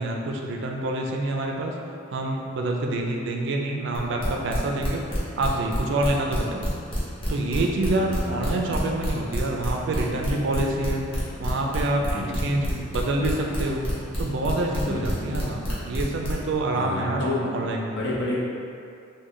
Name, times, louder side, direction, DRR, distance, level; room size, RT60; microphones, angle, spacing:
voice 1, 0.0-1.7 2.1-5.0 5.4-6.7 7.3-11.0 11.4-13.9 14.2-18.0, right 2 dB, 60° right, 1 dB, 0.3 m, -27 dB
sound 1, 3.9-16.6, equal, 25° left, 0.8 m, -29 dB
voice 2, 7.9-8.7 12.1-12.7 14.9-15.4 16.7-17.6 17.9-18.4, left 1 dB, 60° left, -6 dB, 0.7 m, -31 dB
3.8 x 2.1 x 3.1 m, 2.5 s
head